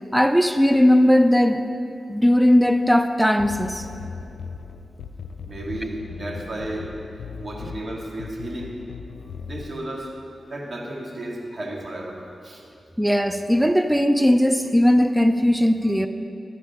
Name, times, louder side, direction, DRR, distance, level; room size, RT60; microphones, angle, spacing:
voice 1, 0.1-1.6 2.1-3.9 13.0-16.1, equal, 5° right, 8 dB, 0.6 m, -18 dB
sound 1, 3.4-9.8, left 5 dB, 85° left, 0.6 m, -38 dB
voice 2, 5.5-6.9 7.4-8.7 9.5-10.1 10.5-12.6, right 1 dB, 45° right, -2 dB, 2.3 m, -33 dB
15.0 x 10.5 x 3.7 m, 2.5 s
cardioid pair, 45°, 0 cm